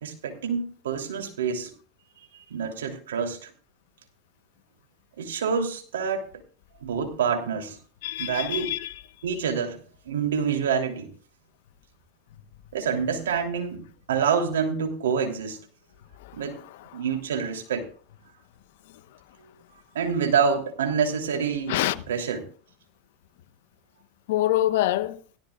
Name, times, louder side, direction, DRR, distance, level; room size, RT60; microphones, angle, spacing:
voice 1, 0.0-1.7 2.5-3.5 5.2-6.2 6.8-7.8 8.2-8.7 9.2-9.8 10.0-11.1 12.7-15.6 16.3-16.6 16.9-17.9 19.9-21.8 22.1-22.4, right 6 dB, 85° right, 3.1 m, -27 dB
voice 2, 8.0-9.0 16.2-17.0 21.7-22.0 24.3-25.2, left 14 dB, 70° left, 1.1 m, -26 dB
17.0 x 13.5 x 2.4 m
hypercardioid pair, 100°, 0 cm